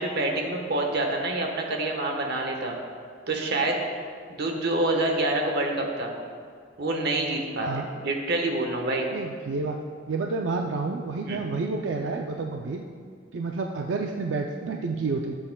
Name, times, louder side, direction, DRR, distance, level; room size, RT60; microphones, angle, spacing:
voice 1, 0.0-2.8 3.3-3.8 4.3-6.1 6.8-9.1 11.2-11.4, right 2 dB, 60° right, 2 dB, 1.2 m, -27 dB
voice 2, 9.1-9.8 10.1-12.8 13.3-15.4, right 3 dB, 90° right, 2 dB, 0.5 m, -29 dB
13.0 x 7.7 x 2.3 m, 2.1 s
head